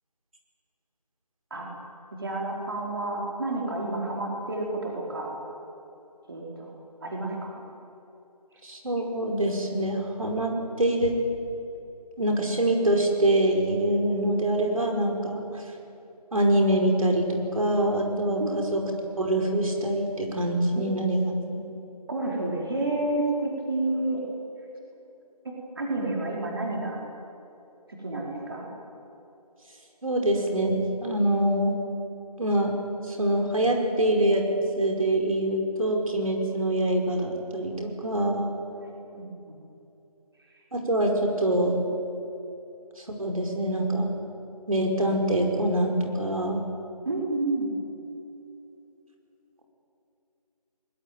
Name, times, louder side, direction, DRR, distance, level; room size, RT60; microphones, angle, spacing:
voice 1, 2.2-5.4 6.3-6.7 7.0-7.6 18.4-18.5 20.7-20.8 22.1-24.2 25.8-27.0 28.0-28.7 38.8-39.5 47.0-47.7, right 2 dB, 35° right, -2 dB, 4.6 m, -30 dB
voice 2, 8.6-11.1 12.2-15.6 16.3-18.8 19.2-21.6 30.0-31.8 32.4-32.8 33.1-34.4 34.8-38.6 40.7-41.1 41.4-41.8 43.0-44.1 44.7-46.6, right 1 dB, 60° right, 1 dB, 5.2 m, -25 dB
23.0 x 21.0 x 9.4 m, 2.9 s
figure-of-eight pair, 170°, 20 cm